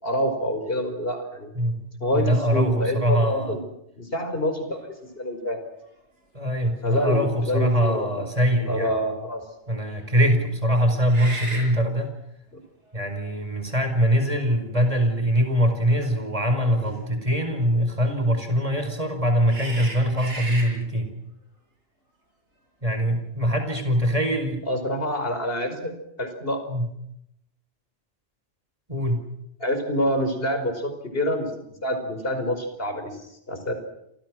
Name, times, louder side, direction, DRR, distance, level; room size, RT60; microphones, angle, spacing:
voice 1, 0.0-1.5 2.0-3.6 4.0-5.6 6.8-8.3 8.7-9.4 12.5-12.6 24.7-26.7 29.6-31.5 31.8-33.2 33.5-33.7, equal, 55° left, 7 dB, 5.4 m, -27 dB
voice 2, 2.1-3.6 6.3-9.0 9.7-12.1 12.9-21.1 22.8-24.6 26.7-26.9 28.9-29.2, equal, 30° right, 6 dB, 4.8 m, -23 dB
sound 1, 5.8-5.9 6.4-6.6 11.0-11.7 12.9-13.0 14.0-14.8 16.7-16.9 19.5-20.7, right 2 dB, 90° right, 7.6 m, -35 dB
30.0 x 26.5 x 6.3 m, 0.79 s
omnidirectional pair, 1.2 m